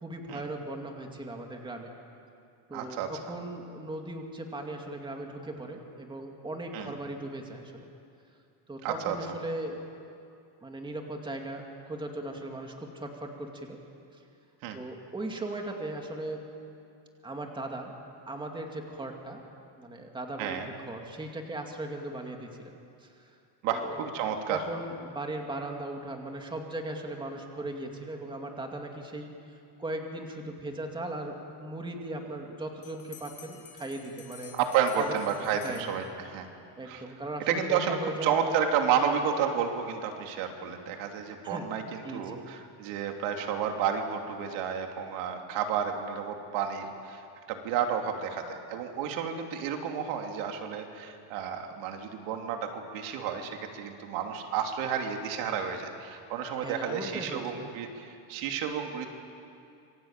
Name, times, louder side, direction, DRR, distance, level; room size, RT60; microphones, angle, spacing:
voice 1, 0.0-1.9 2.7-7.8 8.7-9.8 10.6-13.8 14.7-16.4 17.2-17.9 18.3-19.4 19.8-23.1 23.7-24.0 24.5-29.3 29.8-34.5 35.0-35.1 35.6-35.9 36.8-38.6 41.4-42.4 56.6-57.7, right 2 dB, 10° right, 2 dB, 2.4 m, -38 dB
voice 2, 2.7-3.1 6.7-6.9 8.8-9.2 14.6-14.8 20.4-20.7 23.6-24.7 34.5-36.5 36.8-37.0 37.5-47.2 47.5-59.1, right 7 dB, 80° right, 3 dB, 3.1 m, -31 dB
Bell, 32.8-36.5, left 8 dB, 40° left, 4.0 m, -51 dB
27.0 x 24.0 x 9.0 m, 2.5 s
cardioid pair, 165°, 46 cm